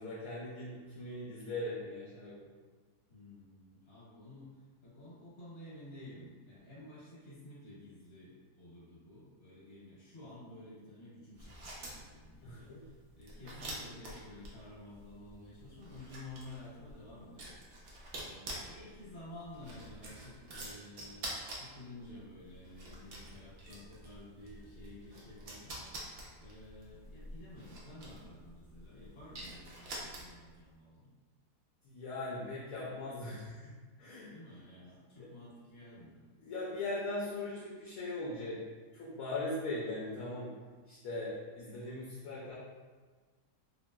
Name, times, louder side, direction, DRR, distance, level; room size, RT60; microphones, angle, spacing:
voice 1, 0.0-2.5 12.4-12.8 13.4-13.5 31.8-33.7 34.0-34.3 35.2-35.3 36.4-38.6 38.9-40.5 40.9-42.5, left 2 dB, 70° left, -6 dB, 1.0 m, -40 dB
voice 2, 3.1-17.6 18.1-31.1 34.3-36.2, left 1 dB, 45° left, -8 dB, 1.2 m, -52 dB
sound 1, 11.3-30.6, right 1 dB, 65° right, 0.6 m, -48 dB
2.9 x 2.9 x 2.2 m, 1.4 s
omnidirectional pair, 1.7 m